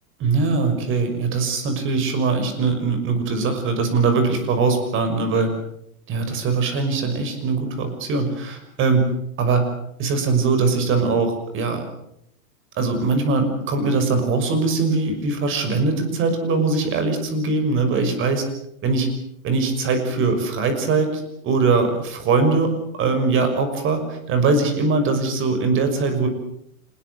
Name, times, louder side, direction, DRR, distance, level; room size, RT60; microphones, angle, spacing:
voice 1, 0.2-5.5 6.1-9.1 9.4-9.7 10.0-11.8 12.8-18.4 18.8-19.1 19.4-22.7 23.0-26.3, right 4 dB, 25° right, 7 dB, 6.1 m, -21 dB
26.5 x 21.5 x 7.9 m, 0.74 s
hypercardioid pair, 145°, 46 cm